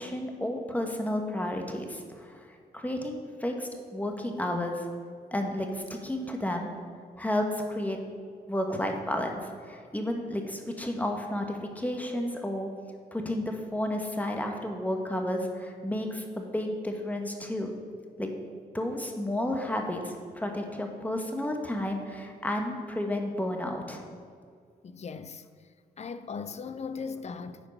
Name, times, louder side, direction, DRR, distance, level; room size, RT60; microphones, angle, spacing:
voice 1, 0.0-2.5 2.7-4.8 5.3-6.7 7.2-8.0 8.5-12.7 13.1-17.7 18.2-18.3 18.7-24.2, left 1 dB, 10° left, 1.3 m, -32 dB
voice 2, 24.8-25.4 26.0-27.6, left 5 dB, 40° left, 0.5 m, -38 dB
9.2 x 4.4 x 5.4 m
cardioid pair, 60°, 18 cm